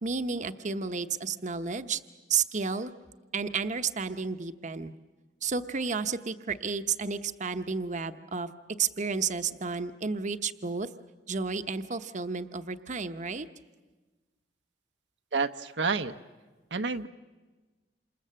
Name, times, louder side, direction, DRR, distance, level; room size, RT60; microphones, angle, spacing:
voice 1, 0.0-2.0 2.3-2.9 3.3-4.9 5.4-10.9 11.3-13.5, right 5 dB, 45° right, 10 dB, 0.9 m, -32 dB
voice 2, 15.3-16.1 16.7-17.1, right 4 dB, 75° right, 8 dB, 0.9 m, -29 dB
28.0 x 27.0 x 7.7 m, 1.3 s
head